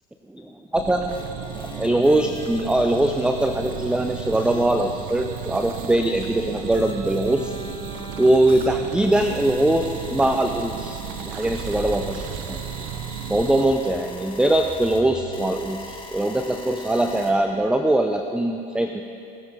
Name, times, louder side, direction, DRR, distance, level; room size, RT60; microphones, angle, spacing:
voice 1, 0.3-1.2 1.8-7.5 8.2-12.6 13.3-19.0, right 1 dB, 5° right, 5 dB, 0.6 m, -22 dB
sound 1, 0.7-13.6, right 11 dB, 75° right, 0.7 m, -35 dB
sound 2, 1.1-17.3, left 2 dB, 25° left, 2.0 m, -42 dB
sound 3, 11.4-17.8, right 2 dB, 25° right, 1.4 m, -40 dB
19.5 x 7.7 x 4.9 m, 2.7 s
supercardioid pair, 95°, 20 cm